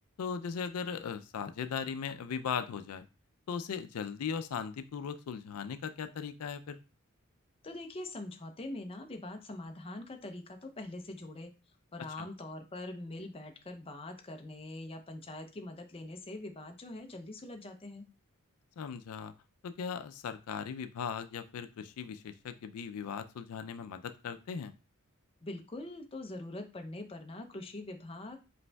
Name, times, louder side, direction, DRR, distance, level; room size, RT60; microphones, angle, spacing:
voice 1, 0.2-3.1 3.5-6.8 12.2-12.3 18.8-19.3 19.6-24.7, left 6 dB, 85° left, 10 dB, 0.4 m, -38 dB
voice 2, 7.6-11.5 11.9-18.1 25.4-28.4, left 2 dB, 25° left, 5 dB, 0.5 m, -43 dB
5.1 x 3.1 x 2.2 m, 0.30 s
head